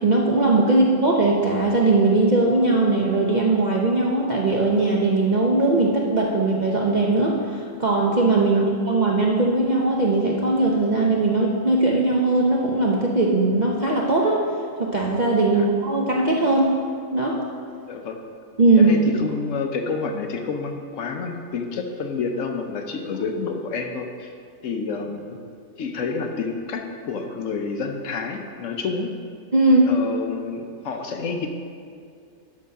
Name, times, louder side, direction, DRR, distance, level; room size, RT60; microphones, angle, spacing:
voice 1, 0.0-14.4 14.8-16.8 17.1-17.4 18.6-18.9 29.5-29.9, right 2 dB, 45° right, -2 dB, 0.6 m, -19 dB
voice 2, 17.9-18.2 18.8-24.3 24.6-25.4 25.8-29.1 29.9-31.5, left 4 dB, 65° left, 4 dB, 1.0 m, -29 dB
11.5 x 3.8 x 5.5 m, 2.3 s
omnidirectional pair, 1.5 m